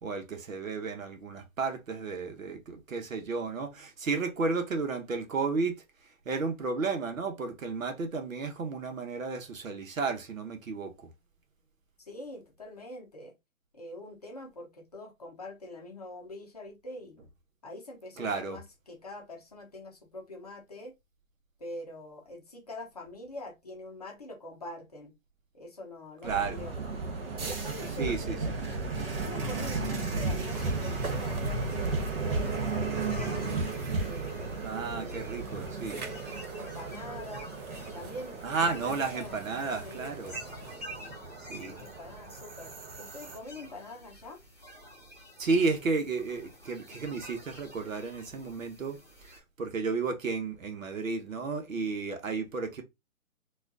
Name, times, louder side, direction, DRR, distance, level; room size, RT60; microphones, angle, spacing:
voice 1, 0.0-5.7 6.3-10.9 18.2-18.6 26.2-26.6 28.0-28.4 34.6-36.0 38.4-40.4 41.5-41.7 45.4-49.0 49.3-52.8, right 4 dB, 65° right, 1.1 m, -32 dB
voice 2, 12.0-13.3 13.7-17.3 17.6-20.9 21.6-25.1 25.5-26.7 27.4-28.5 29.2-33.5 34.0-34.6 35.8-37.5 37.9-38.4 38.7-39.4 39.8-40.2 41.6-42.7 43.0-44.4, left 1 dB, 30° left, 0.7 m, -44 dB
sound 1, 26.2-43.4, right 3 dB, 40° right, 0.9 m, -35 dB
sound 2, 29.1-40.8, right 3 dB, 90° right, 1.1 m, -47 dB
sound 3, 30.4-49.4, equal, 5° right, 1.5 m, -49 dB
4.2 x 2.5 x 2.5 m
hypercardioid pair, 160°, 42 cm